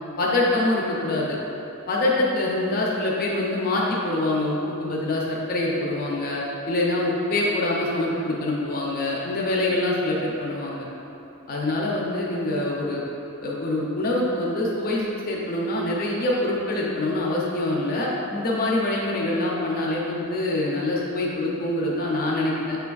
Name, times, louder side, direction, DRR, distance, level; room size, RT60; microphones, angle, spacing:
voice 1, 0.2-1.4 1.9-10.9 11.5-13.0 13.4-22.8, left 2 dB, 40° left, -3 dB, 0.5 m, -25 dB
6.8 x 3.4 x 2.3 m, 2.9 s
head